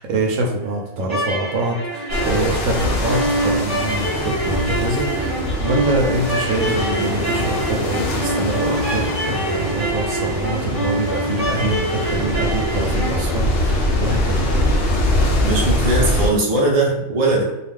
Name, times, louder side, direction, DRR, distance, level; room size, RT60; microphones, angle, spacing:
voice 1, 0.0-5.3 5.6-14.5, right 2 dB, 65° right, 0 dB, 0.9 m, -25 dB
sound 1, 1.0-13.3, right 2 dB, 30° right, 0.8 m, -25 dB
sound 2, 2.1-16.3, left 1 dB, 90° left, 0.5 m, -23 dB
voice 2, 15.4-17.4, right 2 dB, 50° right, -2 dB, 0.4 m, -19 dB
2.4 x 2.4 x 3.3 m, 0.93 s
omnidirectional pair, 1.6 m